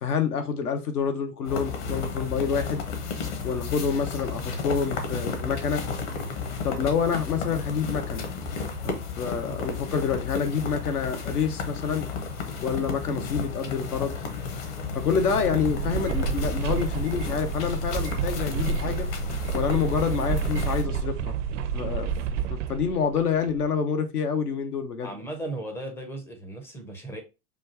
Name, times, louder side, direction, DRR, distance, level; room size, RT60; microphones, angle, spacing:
voice 1, 0.0-2.8 3.4-5.8 6.6-8.3 8.8-12.1 12.6-14.1 14.9-19.1 19.5-21.4 21.7-22.1 22.5-25.1, left 6 dB, 80° left, 0.9 m, -27 dB
sound 1, 1.4-20.8, left 4 dB, 50° left, 1.1 m, -33 dB
sound 2, 15.1-23.7, right 7 dB, 55° right, 0.5 m, -30 dB
voice 2, 25.0-27.2, right 1 dB, 5° left, 0.4 m, -36 dB
5.1 x 2.4 x 2.7 m
figure-of-eight pair, 100°, 45 cm